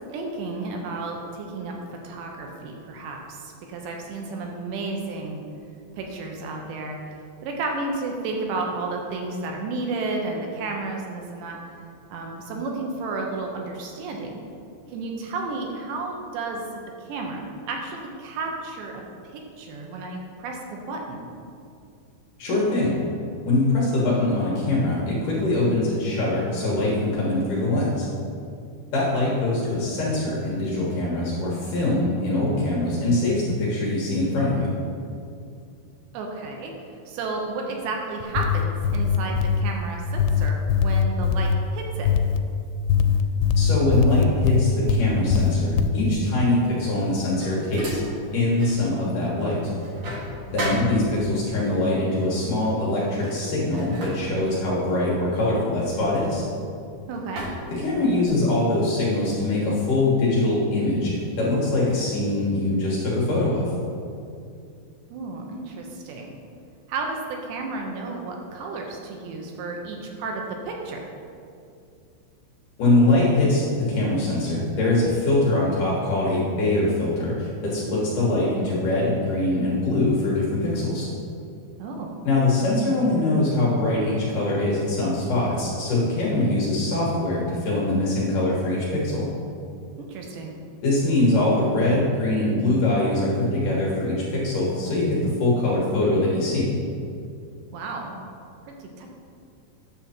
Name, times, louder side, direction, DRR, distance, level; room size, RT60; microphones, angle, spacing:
voice 1, 0.1-5.4 5.9-7.0 7.4-11.6 12.1-14.4 14.9-16.6 17.0-18.9 19.2-21.2 36.1-42.1 57.1-57.4 65.1-66.3 66.9-71.0 81.8-82.1 90.0-90.5 97.7-98.1 98.7-99.2, right 3 dB, 80° right, 1 dB, 3.0 m, -32 dB
voice 2, 22.4-23.0 23.5-28.1 28.9-34.7 43.5-48.0 48.3-49.7 50.5-56.4 57.7-63.7 72.8-81.1 82.2-89.3 90.8-96.8, left 2 dB, 60° left, -6 dB, 2.5 m, -23 dB
sound 1, 38.2-39.6 40.2-41.6 42.1-42.4 42.9-45.0 45.3-45.9, left 6 dB, 85° left, 2.9 m, -21 dB
sound 2, 47.1-48.8 49.2-51.5 52.4-52.6 53.0-56.8 57.4-58.5, equal, 55° right, 2.7 m, -36 dB
9.8 x 7.0 x 4.3 m, 2.5 s
omnidirectional pair, 5.2 m